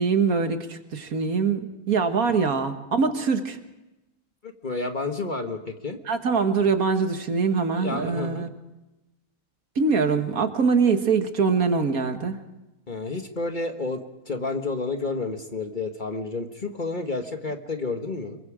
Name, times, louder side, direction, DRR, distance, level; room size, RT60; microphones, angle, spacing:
voice 1, 0.0-3.6 6.1-8.5 9.8-12.4, right 5 dB, 70° right, 7 dB, 2.0 m, -23 dB
voice 2, 4.4-6.0 7.7-8.5 12.9-18.4, left 3 dB, 35° left, 5 dB, 1.4 m, -30 dB
26.5 x 23.0 x 5.0 m, 1.0 s
omnidirectional pair, 1.6 m